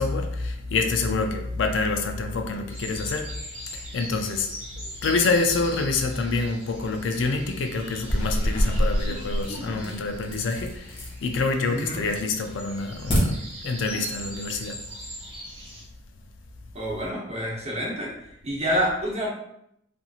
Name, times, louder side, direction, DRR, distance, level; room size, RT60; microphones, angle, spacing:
voice 1, 0.0-3.3 3.7-4.5 5.0-14.8, left 3 dB, 65° left, 0.4 m, -27 dB
sound 1, 2.7-15.8, equal, 5° right, 1.1 m, -41 dB
sound 2, 8.0-11.2 11.6-12.2 12.5-13.2, equal, 30° left, 0.7 m, -26 dB
voice 2, 11.7-12.0 16.7-18.1 18.4-19.3, equal, 35° right, 0.7 m, -27 dB
2.8 x 2.6 x 2.3 m
head